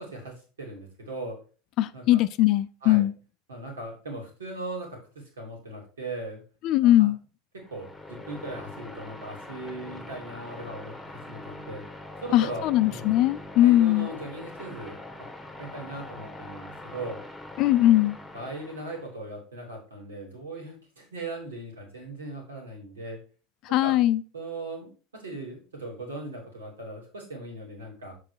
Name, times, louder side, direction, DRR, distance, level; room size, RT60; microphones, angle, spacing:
voice 1, 0.1-1.4 1.9-2.2 2.8-3.0 3.5-6.4 6.8-7.1 7.7-11.8 12.2-13.1 13.6-15.0 15.6-17.2 17.8-17.9 18.3-23.2 23.7-23.9 24.3-28.1, right 2 dB, 75° right, -1 dB, 3.0 m, -39 dB
voice 2, 1.8-3.1 6.6-7.2 12.3-14.1 17.6-18.2 23.7-24.2, left 14 dB, 50° left, 14 dB, 0.5 m, -20 dB
sound 1, 7.6-19.1, left 2 dB, ahead, 1.4 m, -43 dB
7.3 x 4.8 x 4.6 m, 0.36 s
figure-of-eight pair, 75°, 0 cm